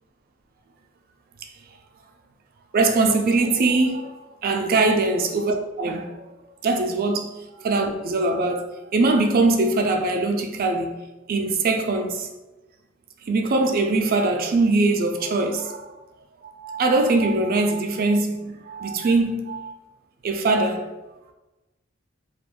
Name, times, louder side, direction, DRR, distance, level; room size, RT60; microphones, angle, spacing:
voice 1, 2.7-6.2 6.6-11.0 11.3-12.3 13.3-15.9 16.4-19.7 20.2-20.9, right 3 dB, 45° right, 0.4 m, -22 dB
2.4 x 2.2 x 3.5 m
head